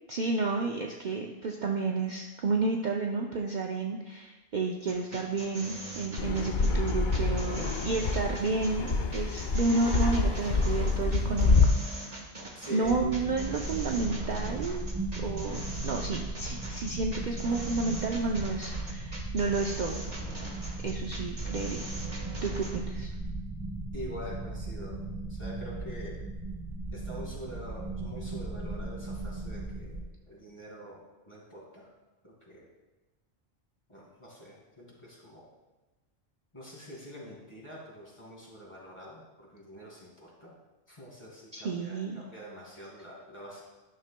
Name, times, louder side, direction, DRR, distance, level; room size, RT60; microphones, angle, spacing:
voice 1, 0.1-11.7 12.0-12.2 12.7-14.9 15.2-20.0 20.8-21.9 22.4-23.1 41.5-42.2, right 3 dB, 50° right, 1 dB, 0.6 m, -31 dB
sound 1, 4.8-22.8, right 1 dB, 35° right, 1.4 m, -41 dB
Fixed-wing aircraft airplane, 6.2-11.7, left 3 dB, 50° left, 0.7 m, -27 dB
voice 2, 12.5-13.0 23.9-25.0 25.3-26.2 26.9-31.9 32.2-32.7 33.9-35.5 36.5-40.5 40.9-43.6, equal, 25° left, -5 dB, 2.4 m, -45 dB
sound 2, 12.8-30.0, right 2 dB, 15° right, 2.6 m, -37 dB
12.0 x 6.3 x 2.2 m, 1.2 s
omnidirectional pair, 1.1 m